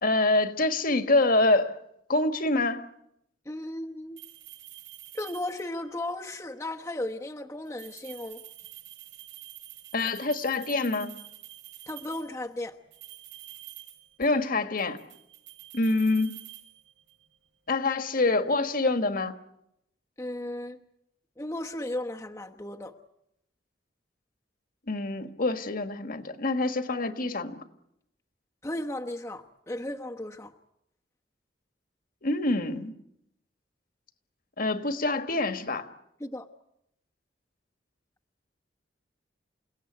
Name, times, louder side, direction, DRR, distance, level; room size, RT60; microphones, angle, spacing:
voice 1, 0.0-1.8 2.1-2.8 9.9-11.2 14.2-15.0 15.7-16.4 17.7-19.3 24.9-27.6 32.2-32.9 34.6-35.9, left 2 dB, 50° left, 9 dB, 1.6 m, -26 dB
voice 2, 3.4-4.2 5.1-8.4 11.9-12.8 20.2-20.8 21.4-22.9 28.6-30.5 36.2-36.5, left 1 dB, 15° left, 1 dB, 1.1 m, -35 dB
sound 1, 4.2-5.9 7.7-12.4 12.9-14.5 14.8-17.2, right 13 dB, 80° right, 5.5 m, -47 dB
29.0 x 17.0 x 9.5 m, 0.80 s
head